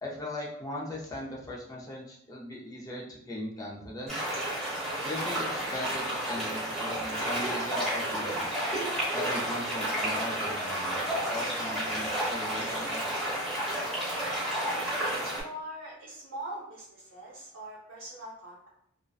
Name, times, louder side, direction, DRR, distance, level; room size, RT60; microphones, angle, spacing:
voice 1, 0.0-4.3 5.0-8.5 9.1-13.0, left 1 dB, 20° left, -3 dB, 0.4 m, -38 dB
sound 1, 4.1-15.4, right 1 dB, ahead, 1.0 m, -31 dB
voice 2, 15.4-18.7, right 1 dB, 85° right, -7 dB, 0.6 m, -42 dB
2.5 x 2.1 x 2.3 m, 0.72 s
head